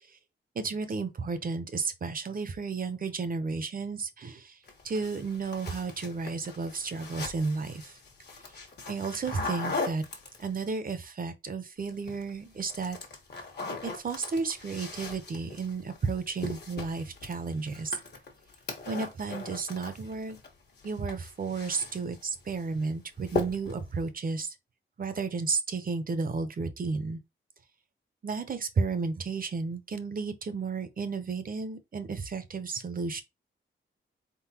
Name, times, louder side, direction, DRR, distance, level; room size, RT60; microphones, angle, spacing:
voice 1, 0.6-4.5 4.8-7.8 8.9-10.0 10.4-13.0 13.8-18.0 18.9-20.4 20.8-24.5 25.0-27.2 28.2-33.2, right 4 dB, 45° right, 0.7 m, -33 dB
sound 1, 4.7-10.7 11.8-12.3 12.6-20.5 20.8-22.2 22.6-22.9 23.3-23.9, left 3 dB, 50° left, 1.3 m, -39 dB
4.3 x 3.8 x 2.8 m
wide cardioid pair, 165°, 21 cm